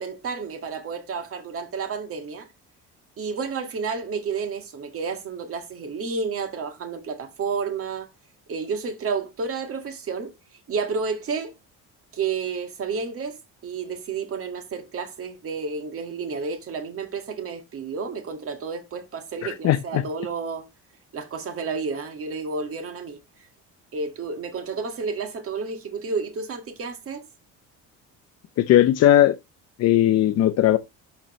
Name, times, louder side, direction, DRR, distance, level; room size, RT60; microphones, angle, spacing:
voice 1, 0.0-2.5 3.2-8.1 8.5-11.5 12.1-13.4 13.6-20.7 21.1-23.2 23.9-27.2, right 5 dB, 45° right, 1.9 m, -31 dB
voice 2, 28.6-29.4 29.8-30.8, left 12 dB, 55° left, 0.6 m, -17 dB
12.0 x 4.1 x 3.2 m
cardioid pair, 135°, 32 cm